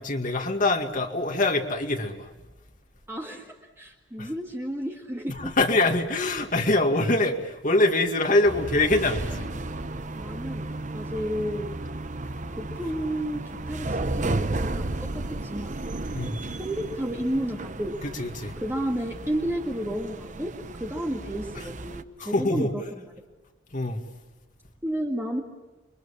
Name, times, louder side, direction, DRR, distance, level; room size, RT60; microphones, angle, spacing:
voice 1, 0.0-2.3 4.2-4.3 5.3-9.5 16.1-16.4 18.0-18.5 21.6-21.7 22.2-22.7 23.7-24.0, left 2 dB, 40° left, 4 dB, 2.2 m, -24 dB
voice 2, 3.1-5.5 10.1-11.7 12.6-15.8 16.6-18.0 18.6-20.5 20.8-23.1 24.8-25.4, equal, 10° right, 0 dB, 1.9 m, -32 dB
sound 1, 8.4-22.0, right 2 dB, 35° right, 0.9 m, -33 dB
29.0 x 23.5 x 7.3 m, 1.1 s
head